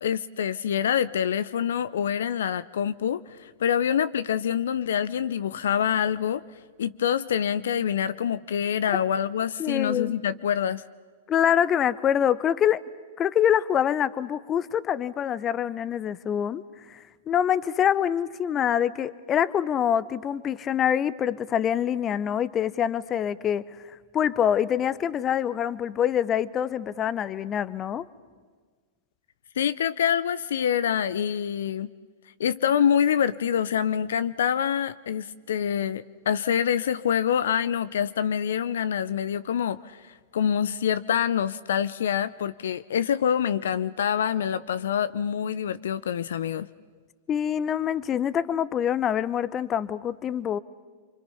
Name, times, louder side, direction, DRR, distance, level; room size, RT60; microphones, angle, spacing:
voice 1, 0.0-6.4 6.8-10.8 29.6-31.9 32.4-40.0 40.3-46.7, left 8 dB, 70° left, 15 dB, 0.6 m, -26 dB
voice 2, 9.6-10.2 11.3-12.8 13.2-16.6 16.9-23.6 24.1-28.0 47.3-50.6, left 9 dB, 30° left, 17 dB, 0.8 m, -25 dB
28.0 x 25.5 x 5.6 m, 1.5 s
hypercardioid pair, 100°, 0 cm